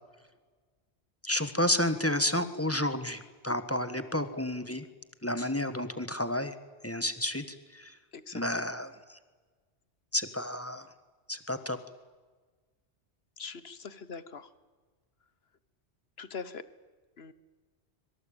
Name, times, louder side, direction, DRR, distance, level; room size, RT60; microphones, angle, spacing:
voice 1, 1.2-4.9 5.2-6.6 6.8-7.9 8.3-9.2 10.1-10.9 11.3-11.8, left 1 dB, 10° left, 10 dB, 1.4 m, -31 dB
voice 2, 8.1-8.8 13.4-14.5 16.2-16.6 17.2-17.3, left 5 dB, 60° left, 15 dB, 1.5 m, -42 dB
25.5 x 23.5 x 8.8 m, 1.4 s
omnidirectional pair, 1.2 m